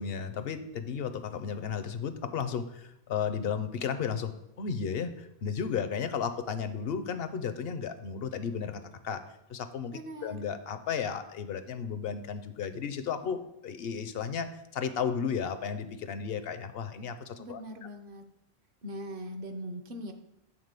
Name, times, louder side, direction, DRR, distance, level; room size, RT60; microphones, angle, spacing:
voice 1, 0.0-4.3 4.6-9.2 9.5-17.6, left 6 dB, 70° left, 10 dB, 0.9 m, -34 dB
voice 2, 9.9-10.4 17.4-18.2 18.8-20.1, equal, 60° right, 7 dB, 1.0 m, -40 dB
8.7 x 3.7 x 6.6 m, 0.84 s
omnidirectional pair, 1.1 m